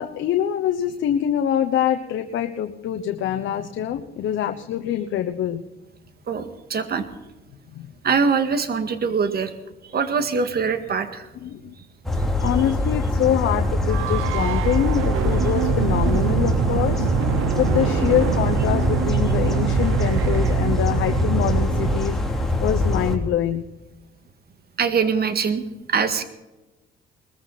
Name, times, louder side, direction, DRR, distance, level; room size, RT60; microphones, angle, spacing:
voice 1, 0.0-5.6 7.7-7.9 11.4-11.6 12.4-17.1 17.6-23.6, left 10 dB, 75° left, 5 dB, 1.0 m, -24 dB
voice 2, 6.3-7.1 8.0-9.5 9.9-11.3 24.8-25.6 25.9-26.2, right 5 dB, 50° right, 9 dB, 2.0 m, -23 dB
sound 1, 12.0-23.2, left 1 dB, ahead, 2.9 m, -23 dB
sound 2, 13.1-22.0, right 14 dB, 90° right, 0.5 m, -26 dB
20.0 x 15.0 x 4.2 m, 1.0 s
cardioid pair, 90°, 20 cm